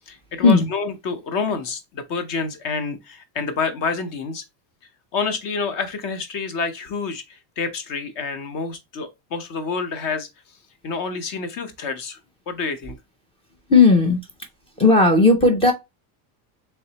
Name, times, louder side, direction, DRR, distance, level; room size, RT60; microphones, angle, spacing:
voice 1, 0.1-4.4 5.1-10.3 10.8-12.2 12.5-13.0, left 4 dB, 45° left, 0.9 m, -28 dB
voice 2, 13.7-14.2 14.8-15.7, left 3 dB, 15° left, 0.4 m, -14 dB
3.9 x 3.3 x 2.9 m
cardioid pair, 155°, 48 cm